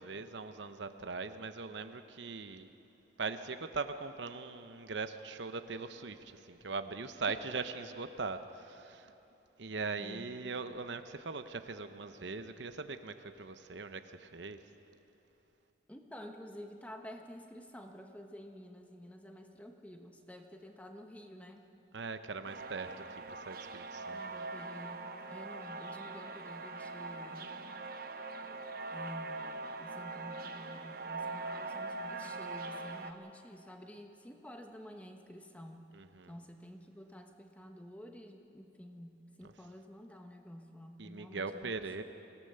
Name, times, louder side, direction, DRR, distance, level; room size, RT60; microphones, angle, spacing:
voice 1, 0.0-2.7 3.2-9.1 9.6-14.6 21.9-24.2 35.9-36.3 39.4-39.5 41.0-42.0, right 4 dB, 75° right, 9 dB, 0.9 m, -41 dB
voice 2, 10.0-10.3 15.9-21.6 24.1-27.5 28.4-28.5 28.9-35.9 36.3-42.0, equal, 10° left, 4 dB, 1.2 m, -50 dB
sound 1, 22.4-33.1, right 3 dB, 50° right, 0.9 m, -42 dB
24.5 x 16.5 x 6.9 m, 3.0 s
head